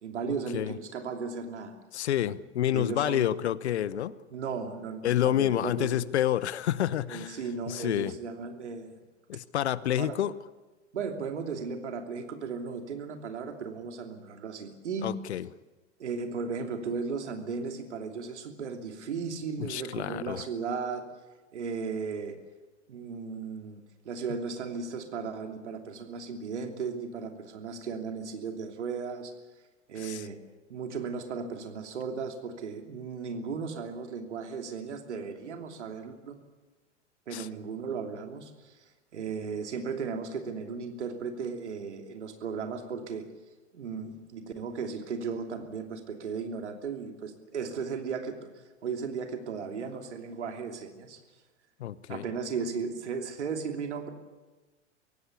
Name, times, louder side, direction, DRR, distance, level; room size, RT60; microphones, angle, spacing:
voice 1, 0.0-1.8 2.7-3.3 4.3-5.9 7.1-9.0 10.0-10.2 10.9-15.1 16.0-21.1 21.5-22.4 22.9-29.3 29.9-30.4 30.7-36.4 37.3-38.7 39.1-43.3 43.7-48.5 48.8-51.2 52.1-54.1, right 5 dB, 70° right, 5 dB, 3.0 m, -36 dB
voice 2, 1.9-4.1 5.0-7.4 7.7-8.2 9.3-10.3 15.0-15.5 19.6-20.4 30.0-30.2 37.3-37.5 51.8-52.2, left 11 dB, 65° left, 19 dB, 0.9 m, -28 dB
24.0 x 17.0 x 8.4 m, 1.2 s
figure-of-eight pair, 90°, 36 cm